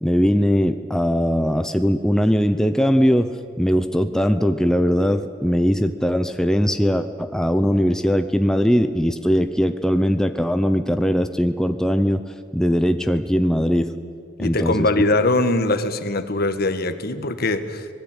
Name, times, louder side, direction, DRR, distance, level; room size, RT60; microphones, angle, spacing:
voice 1, 0.0-12.2 12.5-13.9 14.4-14.9, equal, 5° left, 8 dB, 0.8 m, -20 dB
voice 2, 14.4-17.9, left 2 dB, 55° left, 10 dB, 1.6 m, -21 dB
25.5 x 19.0 x 9.0 m, 2.3 s
head